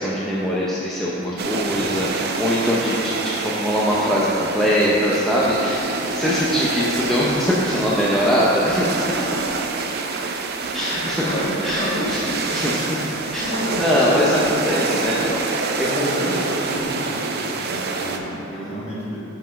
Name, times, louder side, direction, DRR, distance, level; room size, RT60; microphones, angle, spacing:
voice 1, 0.0-9.6 10.7-11.3 11.6-12.2 12.5-13.0 13.3-13.5 13.8-16.4 18.5-18.8, equal, ahead, -7 dB, 0.6 m, -22 dB
sound 1, 1.4-18.2, right 4 dB, 50° right, 0.5 m, -27 dB
voice 2, 1.5-2.0 4.5-4.6 8.1-8.3 10.9-12.4 13.0-13.1 13.4-14.4 14.9-15.1 15.8-19.2, equal, 30° left, -7 dB, 1.6 m, -29 dB
5.6 x 5.4 x 5.7 m, 2.9 s
head